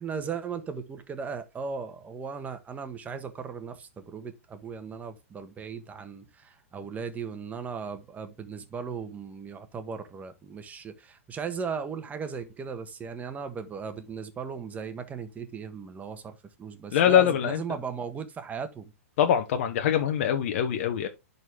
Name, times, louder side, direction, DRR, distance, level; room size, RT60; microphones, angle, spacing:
voice 1, 0.0-18.9, right 6 dB, 20° right, 1.4 m, -37 dB
voice 2, 16.9-17.6 19.2-21.1, left 9 dB, 60° left, 1.1 m, -23 dB
10.5 x 4.2 x 3.4 m
hypercardioid pair, 115°, 8 cm